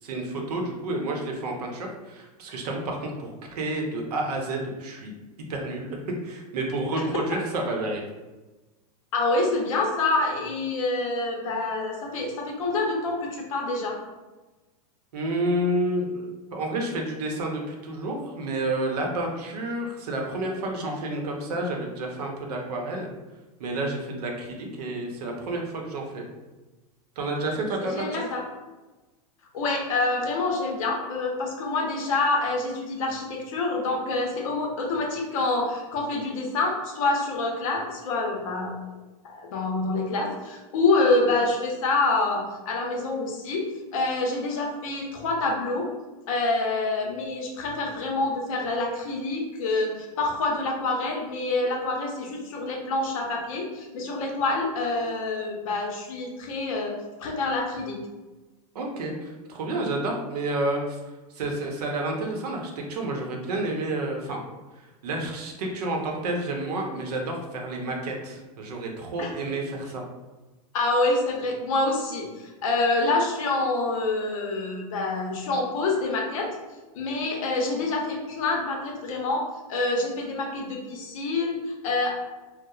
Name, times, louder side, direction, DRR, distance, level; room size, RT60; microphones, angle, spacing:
voice 1, 0.0-5.1 5.5-5.9 6.2-8.0 15.1-23.1 23.6-26.3 27.2-28.2 58.7-61.0 61.3-64.4 64.8-70.0, right 1 dB, 85° right, 1 dB, 0.7 m, -30 dB
voice 2, 9.1-14.0 27.8-28.4 29.5-38.7 39.2-43.6 43.9-45.9 46.3-56.9 57.2-58.0 69.2-69.3 70.7-76.5 76.9-82.1, left 3 dB, 60° left, 0 dB, 0.6 m, -27 dB
2.9 x 2.0 x 2.3 m, 1.2 s
supercardioid pair, 160°, 20 cm